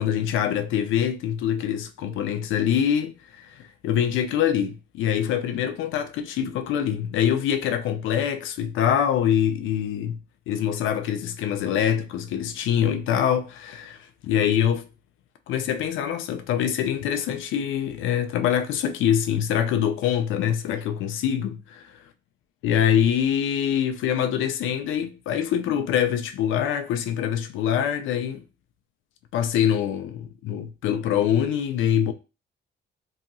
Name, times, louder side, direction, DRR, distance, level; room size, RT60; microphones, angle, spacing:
voice 1, 0.0-10.2 10.5-14.9 15.5-21.9 22.6-28.4 29.3-32.1, left 9 dB, 80° left, 0.4 m, -24 dB
2.8 x 2.7 x 2.6 m
cardioid pair, 90°, 20 cm